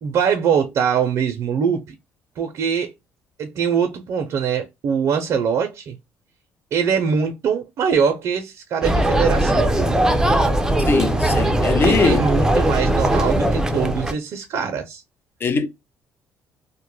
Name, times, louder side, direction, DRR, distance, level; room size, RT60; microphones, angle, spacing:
voice 1, 0.0-1.9 2.4-2.9 3.4-6.0 6.7-9.7 11.8-15.0, right 7 dB, 65° right, 0.5 m, -22 dB
sound 1, 8.8-14.1, right 1 dB, 10° right, 0.4 m, -19 dB
voice 2, 10.9-12.2 15.4-15.7, left 4 dB, 40° left, 0.5 m, -20 dB
2.2 x 2.0 x 3.1 m
supercardioid pair, 80°, 6 cm